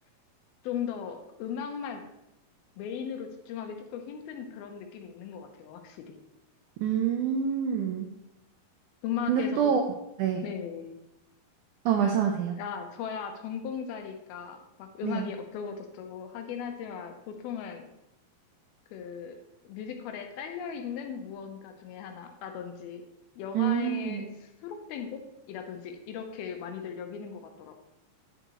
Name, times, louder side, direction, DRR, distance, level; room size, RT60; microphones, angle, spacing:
voice 1, 0.6-2.0 2.8-6.2 9.0-9.7 10.4-10.9 12.6-17.9 18.9-19.4 19.6-23.0 23.4-25.2 25.5-27.7, left 7 dB, 80° left, 5 dB, 2.7 m, -37 dB
voice 2, 6.8-8.1 9.3-9.8 10.2-10.4 11.9-12.5 15.0-15.2 23.5-24.3, right 8 dB, 90° right, 3 dB, 1.7 m, -26 dB
9.3 x 6.4 x 3.0 m, 0.87 s
omnidirectional pair, 4.4 m